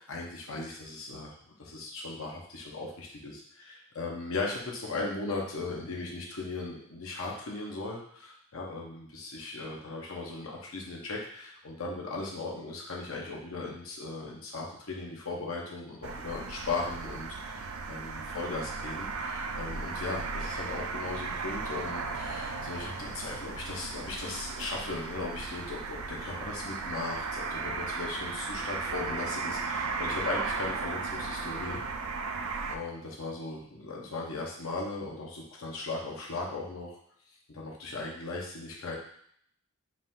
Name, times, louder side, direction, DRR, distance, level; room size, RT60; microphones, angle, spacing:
voice 1, 0.0-31.8 32.7-37.0 37.5-39.0, left 3 dB, 80° left, -2 dB, 1.0 m, -37 dB
sound 1, 16.0-32.8, right 4 dB, 85° right, 0.4 m, -36 dB
5.0 x 2.6 x 3.7 m, 0.66 s
head